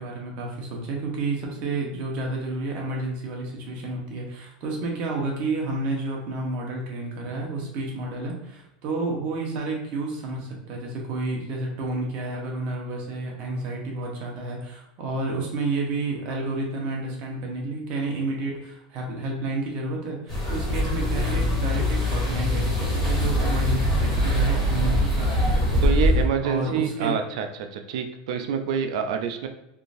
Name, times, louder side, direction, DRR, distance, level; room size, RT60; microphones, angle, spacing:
voice 1, 0.0-25.9 26.4-27.1, right 2 dB, 45° right, -1 dB, 0.9 m, -30 dB
sound 1, 20.3-26.3, left 1 dB, 15° left, 1.3 m, -23 dB
voice 2, 25.8-29.5, right 7 dB, 70° right, 6 dB, 0.4 m, -27 dB
3.6 x 2.5 x 2.5 m, 0.89 s
supercardioid pair, 160°, 3 cm